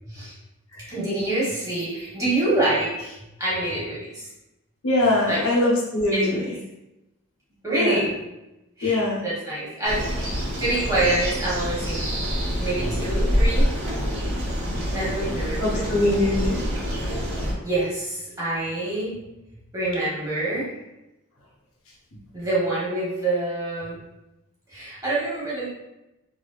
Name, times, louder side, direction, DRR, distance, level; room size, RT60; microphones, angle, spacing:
voice 1, 0.0-0.3 0.9-4.3 5.3-5.4 6.1-6.5 7.6-8.2 8.8-10.3 10.6-12.0 12.6-13.7 14.9-16.2 17.6-19.1 19.7-20.7 22.3-24.0 24.7-25.7, right 2 dB, 15° right, -8 dB, 1.2 m, -26 dB
voice 2, 4.8-6.4 7.8-8.0 8.8-9.2 15.6-16.6, left 1 dB, 75° left, -3 dB, 0.7 m, -22 dB
sound 1, 9.8-17.5, equal, 65° right, 0.9 m, -26 dB
3.2 x 2.7 x 2.3 m, 0.94 s
head